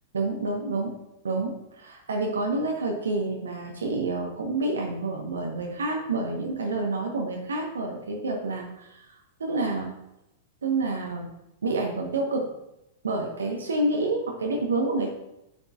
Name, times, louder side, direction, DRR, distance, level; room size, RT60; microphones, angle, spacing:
voice 1, 0.1-0.9 1.2-9.0 9.4-9.9 10.6-11.3 11.6-12.5 13.0-15.1, right 2 dB, 70° right, 1 dB, 1.4 m, -28 dB
11.0 x 6.7 x 2.6 m, 0.88 s
figure-of-eight pair, 95°, 0 cm